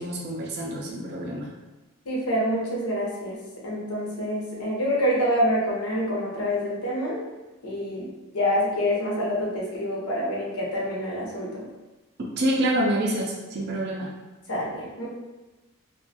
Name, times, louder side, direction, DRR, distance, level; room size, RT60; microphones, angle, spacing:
voice 1, 0.0-1.5 12.4-14.1, right 1 dB, 50° right, -2 dB, 0.3 m, -27 dB
voice 2, 2.1-7.2 7.6-11.6 14.5-15.1, equal, 90° left, -4 dB, 0.8 m, -27 dB
2.5 x 2.2 x 2.6 m, 1.1 s
head